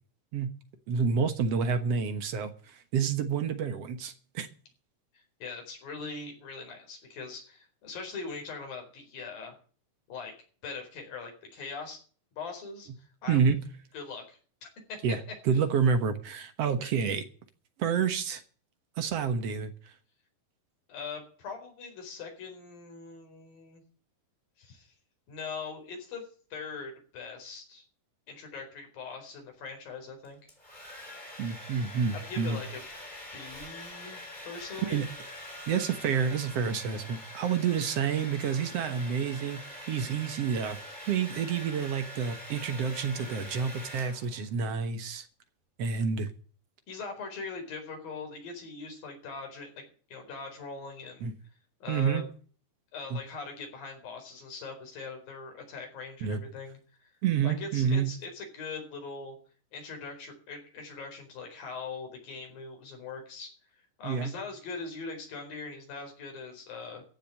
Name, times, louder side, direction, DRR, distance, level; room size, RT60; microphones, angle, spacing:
voice 1, 0.9-4.5 13.3-13.6 15.0-15.2 15.5-17.2 17.8-18.4 19.0-19.7 31.4-32.6 34.8-35.1 35.7-39.6 39.9-40.8 41.1-45.3 45.8-46.3 51.2-51.3 51.9-52.2 53.1-53.2 56.2-56.4 57.2-58.1 64.0-64.3, right 6 dB, 60° right, 9 dB, 1.9 m, -28 dB
voice 2, 5.1-9.5 10.1-10.3 10.6-12.0 12.3-13.4 13.9-15.0 15.5-15.6 16.8-16.9 20.9-23.8 24.6-24.9 25.3-26.3 26.5-27.8 28.3-30.4 32.1-32.8 33.3-35.0 46.9-49.8 50.1-51.3 51.8-52.3 52.9-57.1 57.4-59.4 59.7-63.5 64.0-67.0, left 4 dB, 85° left, 3 dB, 6.1 m, -41 dB
Domestic sounds home sounds, 30.2-44.5, left 1 dB, 10° left, 4.8 m, -44 dB
15.0 x 7.6 x 8.6 m, 0.42 s
omnidirectional pair, 4.0 m